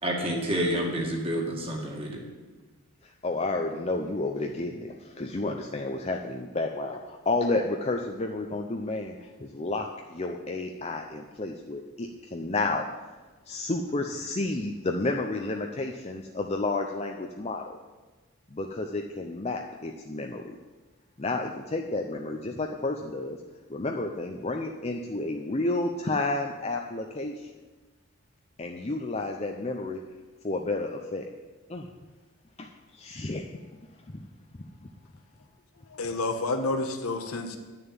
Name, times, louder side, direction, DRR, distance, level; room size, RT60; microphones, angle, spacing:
voice 1, 0.0-2.2, equal, 25° right, 0 dB, 2.1 m, -29 dB
voice 2, 3.2-12.8 13.5-17.8 18.5-20.6 21.2-23.4 23.7-27.5 28.6-30.0 30.4-31.3 31.7-31.9 32.6-32.7 32.9-33.4, left 2 dB, 30° left, 2 dB, 0.6 m, -31 dB
voice 3, 35.9-37.6, left 2 dB, 80° left, 5 dB, 1.3 m, -29 dB
11.0 x 6.7 x 8.9 m, 1.3 s
head